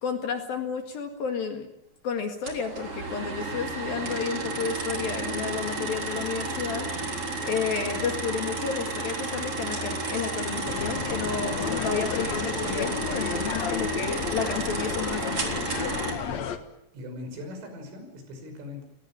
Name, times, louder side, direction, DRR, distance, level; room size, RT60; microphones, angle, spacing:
voice 1, 0.0-1.7 2.0-6.9 7.4-15.7, left 6 dB, 55° left, 5 dB, 3.2 m, -31 dB
sound 1, 2.5-16.1, right 3 dB, 30° right, 4.0 m, -32 dB
sound 2, 10.7-16.6, left 7 dB, 80° left, 1.6 m, -32 dB
voice 2, 16.1-16.6 16.9-18.9, left 2 dB, 80° right, 6 dB, 8.3 m, -40 dB
30.0 x 18.5 x 8.9 m, 0.82 s
omnidirectional pair, 5.7 m